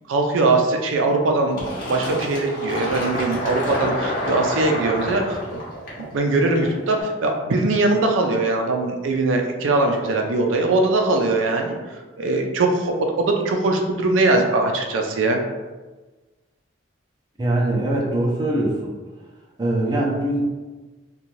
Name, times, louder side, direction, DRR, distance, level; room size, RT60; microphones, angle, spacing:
voice 1, 0.1-5.6 6.0-11.8 12.2-15.4, right 2 dB, 90° right, 3 dB, 0.4 m, -21 dB
Fill (with liquid), 1.6-7.0, equal, 50° left, 0.8 m, -28 dB
voice 2, 17.4-19.0 19.6-20.4, right 1 dB, 20° right, -3 dB, 0.4 m, -22 dB
2.6 x 2.2 x 3.0 m, 1.2 s
head